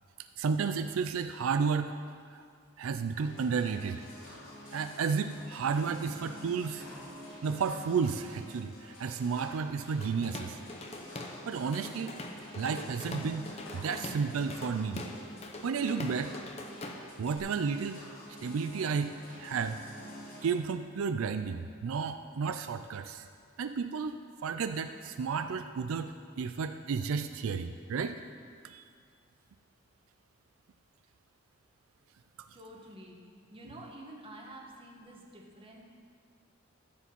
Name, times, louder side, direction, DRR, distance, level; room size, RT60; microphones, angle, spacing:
voice 1, 0.4-1.9 2.3-2.4 2.8-4.0 4.7-6.8 7.4-10.6 11.5-12.2 12.6-13.5 13.7-15.0 15.6-16.4 17.2-18.0 18.4-19.8 20.4-23.3 23.6-28.2 28.6-28.8, right 5 dB, 85° right, 8 dB, 0.4 m, -32 dB
sound 1, 3.1-20.5, equal, 80° left, 3.2 m, -48 dB
Drum kit / Drum, 10.0-11.4 11.7-17.4, left 2 dB, 30° left, 0.8 m, -43 dB
voice 2, 32.5-33.2 33.5-35.8, right 1 dB, 25° right, -1 dB, 1.4 m, -49 dB
14.0 x 5.0 x 6.9 m, 2.1 s
head